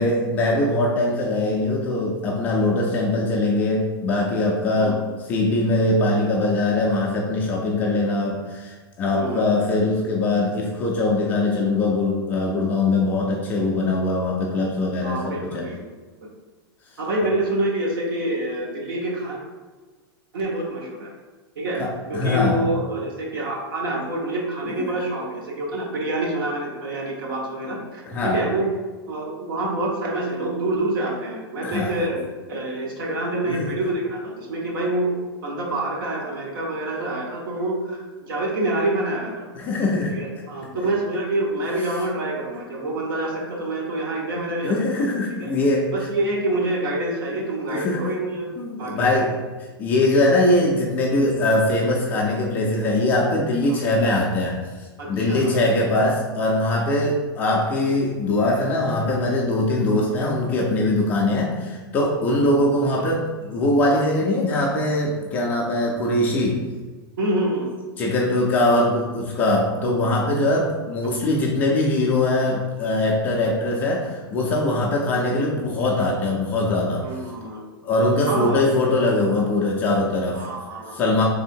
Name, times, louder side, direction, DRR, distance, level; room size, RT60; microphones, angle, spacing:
voice 1, 0.0-5.0 5.3-15.7 17.2-17.3 21.7-22.6 24.7-24.8 28.1-28.4 31.6-31.9 33.4-33.7 39.5-40.2 40.7-40.9 44.6-45.9 47.7-48.0 48.6-49.4 49.8-66.7 68.0-77.1 77.8-80.5 80.9-81.2, left 2 dB, 15° left, -2 dB, 0.3 m, -22 dB
voice 2, 9.1-9.5 15.0-15.8 17.0-19.4 20.3-21.1 21.6-21.8 22.1-28.7 29.1-32.2 32.5-35.1 35.4-39.5 40.1-44.8 45.4-45.5 45.9-48.5 48.8-49.3 53.7-53.8 55.0-55.6 67.2-67.7 77.0-77.6 78.3-78.6 80.3-81.0, right 2 dB, 60° right, -1 dB, 1.1 m, -26 dB
3.5 x 3.4 x 4.4 m, 1.3 s
supercardioid pair, 175°, 13 cm